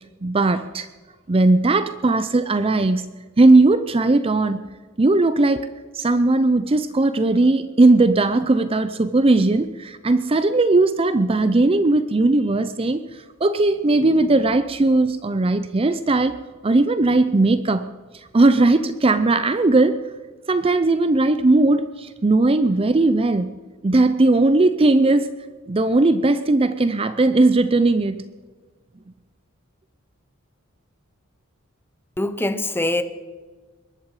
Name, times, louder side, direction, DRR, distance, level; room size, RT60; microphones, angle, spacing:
voice 1, 0.2-0.9 1.3-3.1 3.4-4.6 5.0-5.7 5.9-13.0 13.4-16.4 16.6-17.9 18.3-20.0 20.5-23.6 23.8-25.3 25.7-28.2, right 2 dB, 25° right, 12 dB, 0.5 m, -18 dB
voice 2, 32.2-33.0, left 1 dB, 10° left, 10 dB, 0.8 m, -23 dB
21.5 x 11.5 x 4.9 m, 1.4 s
head